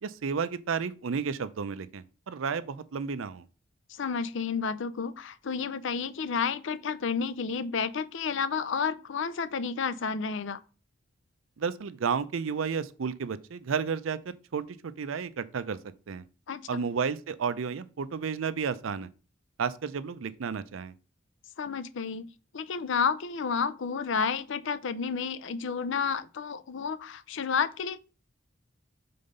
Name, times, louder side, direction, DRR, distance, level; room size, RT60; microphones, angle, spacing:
voice 1, 0.0-3.4 11.6-14.2 14.5-15.8 16.1-16.2 16.7-19.1 19.6-20.9, right 6 dB, 90° right, 0.5 m, -32 dB
voice 2, 3.9-10.6 16.5-16.8 21.6-22.3 22.5-28.0, left 6 dB, 70° left, 0.5 m, -31 dB
5.3 x 3.9 x 5.3 m
head